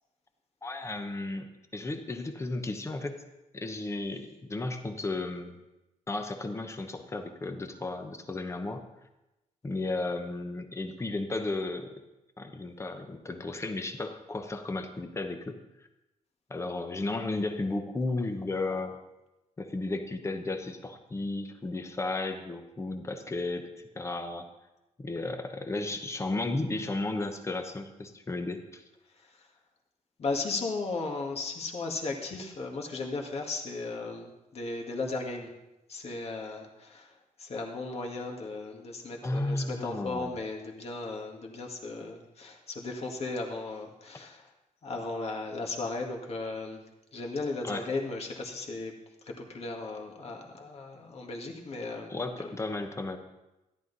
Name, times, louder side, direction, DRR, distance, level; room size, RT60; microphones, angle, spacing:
voice 1, 0.6-3.2 3.5-5.6 6.1-8.8 9.6-12.0 12.4-15.6 16.5-19.0 19.6-24.5 25.0-28.8 39.2-40.4 47.6-47.9 52.1-53.2, left 2 dB, 20° left, 6 dB, 1.1 m, -34 dB
voice 2, 30.2-35.5 35.9-37.1 37.4-44.4 44.8-46.8 47.1-48.9 49.3-52.1 52.4-52.5, left 3 dB, 45° left, 1 dB, 1.9 m, -36 dB
13.5 x 11.0 x 4.1 m, 0.97 s
wide cardioid pair, 140°, 14 cm